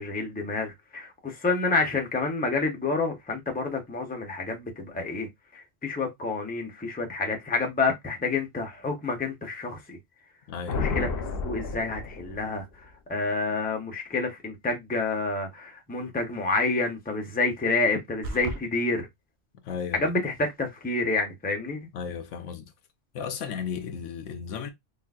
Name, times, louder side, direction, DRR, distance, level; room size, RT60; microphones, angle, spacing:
voice 1, 0.0-10.0 10.7-11.1 11.4-19.1 19.9-21.9, left 3 dB, 10° left, 0.6 m, -28 dB
voice 2, 10.5-10.8 19.6-20.1 21.9-22.7 23.1-24.7, left 7 dB, 85° left, 1.0 m, -34 dB
sound 1, 10.7-12.6, left 4 dB, 60° left, 0.9 m, -31 dB
sound 2, 18.2-18.6, right 3 dB, 70° right, 0.8 m, -33 dB
3.8 x 2.4 x 2.3 m
omnidirectional pair, 1.2 m